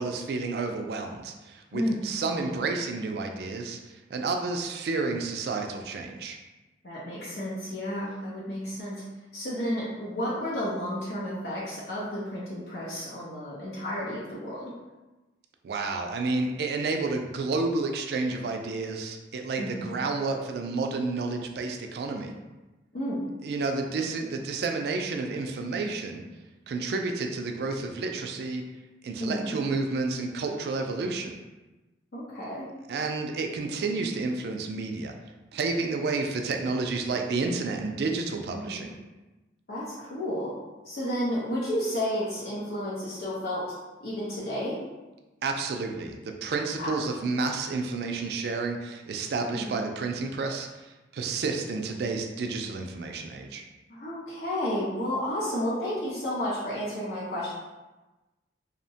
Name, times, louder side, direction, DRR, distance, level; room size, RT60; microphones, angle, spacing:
voice 1, 0.0-6.4 15.6-22.3 23.4-26.2 26.7-28.6 29.0-31.4 32.9-35.1 35.5-38.9 45.4-53.6, right 3 dB, 60° right, 3 dB, 0.3 m, -30 dB
voice 2, 2.2-2.6 6.8-9.0 9.3-14.6 19.6-19.9 22.9-23.2 29.2-29.6 32.1-32.6 38.5-38.9 39.7-40.5 40.8-43.8 44.0-44.8 46.8-46.9 49.5-49.9 53.9-57.5, equal, 60° left, -8 dB, 0.6 m, -32 dB
2.7 x 2.1 x 2.7 m, 1.1 s
head